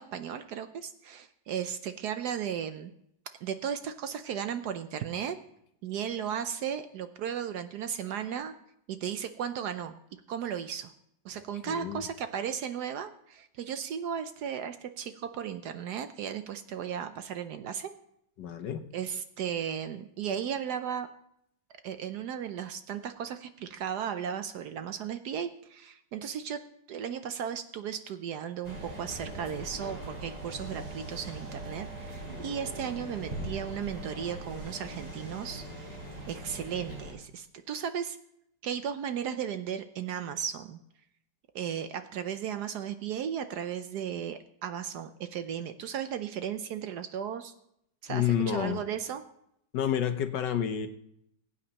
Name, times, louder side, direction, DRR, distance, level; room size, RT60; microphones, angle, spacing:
voice 1, 0.0-2.9 3.4-5.4 5.8-8.5 8.9-10.0 10.3-10.9 11.2-17.9 18.9-21.1 21.8-26.6 26.9-36.0 36.3-38.2 38.6-40.8 41.5-47.5 48.0-49.2, right 8 dB, 70° right, 9 dB, 1.1 m, -35 dB
voice 2, 11.6-12.0 18.4-18.8 48.1-48.8 49.7-50.9, left 9 dB, 70° left, 9 dB, 1.4 m, -29 dB
sound 1, 28.6-37.1, right 1 dB, 30° right, 4.6 m, -41 dB
20.5 x 8.6 x 2.9 m, 0.74 s
omnidirectional pair, 2.1 m